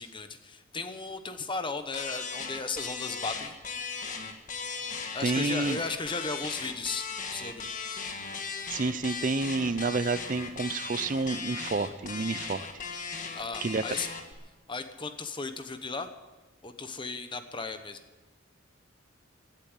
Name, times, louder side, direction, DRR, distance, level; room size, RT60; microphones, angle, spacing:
voice 1, 0.0-3.5 5.1-7.7 13.3-14.1 14.7-16.1 16.6-18.0, left 4 dB, 25° left, 9 dB, 1.0 m, -35 dB
sound 1, 1.9-14.3, left 5 dB, 40° left, 1.6 m, -37 dB
voice 2, 5.2-5.8 8.7-12.7 13.6-13.8, right 3 dB, 40° right, 14 dB, 0.5 m, -29 dB
16.0 x 8.5 x 9.0 m, 1.2 s
head